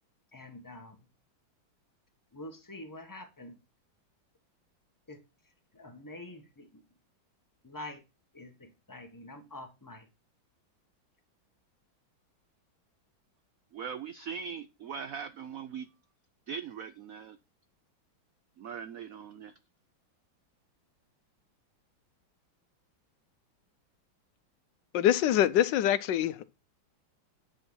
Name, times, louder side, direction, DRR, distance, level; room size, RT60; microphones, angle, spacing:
voice 1, 0.3-1.1 2.3-3.6 5.1-5.2 5.7-6.8 7.6-8.0 8.3-10.1, left 2 dB, 10° left, 1.1 m, -46 dB
voice 2, 13.7-15.9 16.5-17.4 18.6-19.5, right 6 dB, 80° right, 0.7 m, -40 dB
voice 3, 24.9-26.5, left 11 dB, 70° left, 1.2 m, -25 dB
9.9 x 4.8 x 6.1 m
omnidirectional pair, 2.2 m